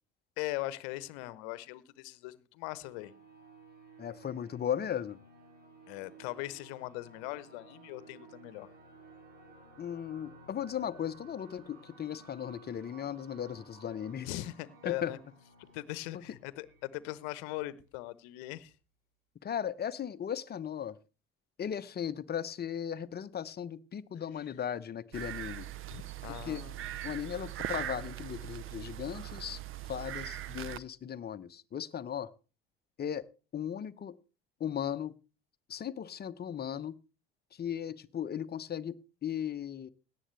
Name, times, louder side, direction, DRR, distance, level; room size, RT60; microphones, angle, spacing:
voice 1, 0.4-3.1 5.9-8.7 14.2-15.2 15.6-18.7 25.9-26.9, left 17 dB, 65° left, 0.9 m, -40 dB
sound 1, 2.7-18.1, right 3 dB, 70° right, 4.2 m, -56 dB
voice 2, 4.0-5.2 9.8-14.3 14.8-15.1 19.4-21.0 21.6-25.7 26.3-26.6 27.0-29.6 29.9-32.3 33.0-34.2 34.6-35.1 35.7-37.0 37.5-39.9, left 9 dB, 30° left, 0.9 m, -37 dB
sound 2, 25.1-30.8, right 13 dB, 40° right, 0.7 m, -40 dB
17.5 x 10.5 x 3.3 m
hypercardioid pair, 60°, 31 cm